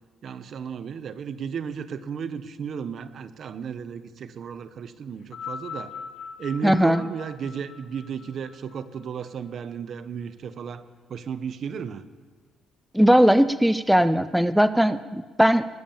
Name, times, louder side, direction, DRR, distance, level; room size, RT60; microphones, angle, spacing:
voice 1, 0.2-5.9 6.4-10.8 11.1-12.1, right 7 dB, 60° right, 13 dB, 0.8 m, -34 dB
sound 1, 5.2-9.7 10.6-10.7, left 6 dB, 70° left, 1.8 m, -41 dB
voice 2, 6.6-7.0 12.9-15.7, equal, ahead, 14 dB, 0.5 m, -19 dB
20.5 x 7.2 x 7.1 m, 1.4 s
cardioid pair, 90°, 0 cm